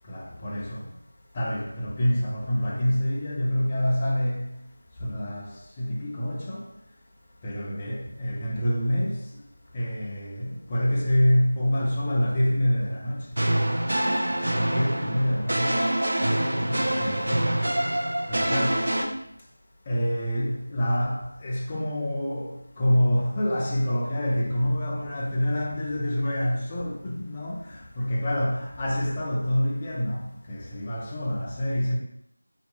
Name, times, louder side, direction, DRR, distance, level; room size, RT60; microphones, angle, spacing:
voice 1, 0.1-0.9 1.3-4.5 5.0-5.5 5.8-6.6 7.4-9.2 9.7-13.3 14.7-15.8 16.6-17.4 18.3-18.8 19.9-32.0, equal, 20° left, 0.3 m, -26 dB
sound 1, 13.4-19.0, right 1 dB, 55° right, 0.4 m, -25 dB
2.7 x 2.1 x 2.7 m
figure-of-eight pair, 170°, 0 cm